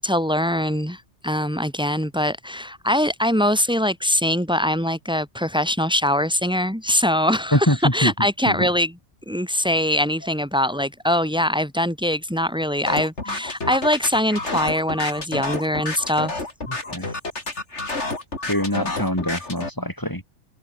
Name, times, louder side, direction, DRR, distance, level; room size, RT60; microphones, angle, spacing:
voice 1, 0.0-9.0 9.3-16.4 17.0-17.2, left 1 dB, 5° right, 6.9 m, -22 dB
voice 2, 7.5-8.1 8.5-8.7 16.7-17.1 18.5-20.2, equal, 15° left, 6.8 m, -23 dB
sound 1, 12.9-19.7, left 2 dB, 70° left, 4.3 m, -29 dB
omnidirectional pair, 1.2 m